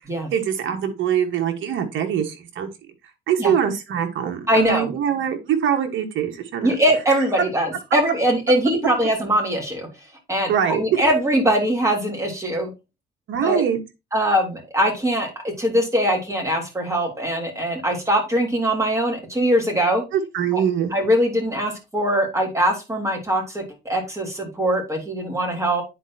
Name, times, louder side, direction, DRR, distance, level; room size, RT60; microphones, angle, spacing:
voice 1, 0.3-2.7 3.3-6.7 10.5-11.1 13.3-13.8 20.1-20.9, right 9 dB, 80° right, 5 dB, 1.4 m, -23 dB
voice 2, 4.5-4.9 6.6-9.9 10.3-12.7 13.4-13.6 14.1-20.0 20.5-20.6 20.9-25.8, equal, 15° right, 1 dB, 3.2 m, -22 dB
9.9 x 4.3 x 2.8 m, 0.26 s
cardioid pair, 90°, 20 cm